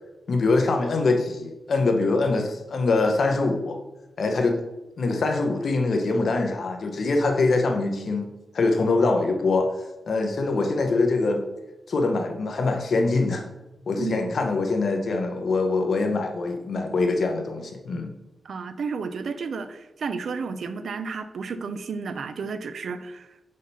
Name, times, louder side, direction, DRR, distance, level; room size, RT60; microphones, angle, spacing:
voice 1, 0.3-3.8 4.2-4.6 5.0-9.7 10.1-11.4 11.9-13.5 13.9-18.1, left 3 dB, 55° left, 4 dB, 0.8 m, -23 dB
voice 2, 14.0-14.5 18.4-23.4, right 5 dB, 65° right, 11 dB, 0.4 m, -32 dB
5.0 x 4.1 x 5.5 m, 1.0 s
wide cardioid pair, 180°, 0 cm